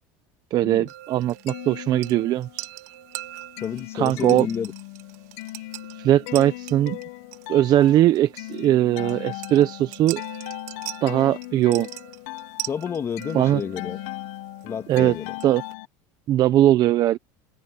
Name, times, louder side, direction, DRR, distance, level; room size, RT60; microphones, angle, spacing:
voice 1, 0.5-2.6 3.9-4.5 6.0-7.0 7.5-10.2 11.0-11.9 13.3-13.6 14.9-15.1 15.4-15.6 16.3-17.2, right 13 dB, 45° right, 0.9 m, -20 dB
sound 1, 0.9-15.7, right 18 dB, 85° right, 1.8 m, -41 dB
sound 2, 1.2-2.7 3.0-15.9, left 20 dB, 75° left, 1.4 m, -38 dB
voice 2, 3.6-4.7 12.7-14.0 14.6-15.3, left 7 dB, 30° left, 2.0 m, -30 dB
open air
supercardioid pair, 125°, 9 cm